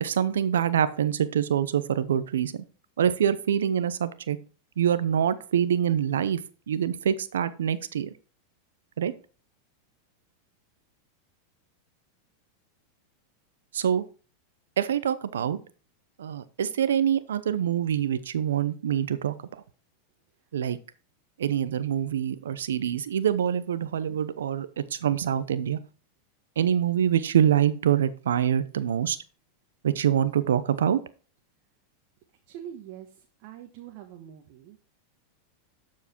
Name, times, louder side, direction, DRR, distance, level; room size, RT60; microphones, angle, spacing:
voice 1, 0.0-2.5 3.0-4.4 4.8-6.4 6.7-8.1 9.0-9.1 13.7-14.0 14.8-15.6 16.2-19.3 20.5-20.8 21.4-25.8 26.6-29.2 29.8-31.0, right 9 dB, 85° right, 14 dB, 0.8 m, -25 dB
voice 2, 32.5-34.8, right 10 dB, 55° right, 3 dB, 1.3 m, -44 dB
12.5 x 4.8 x 4.5 m, 0.38 s
hypercardioid pair, 105°, 0 cm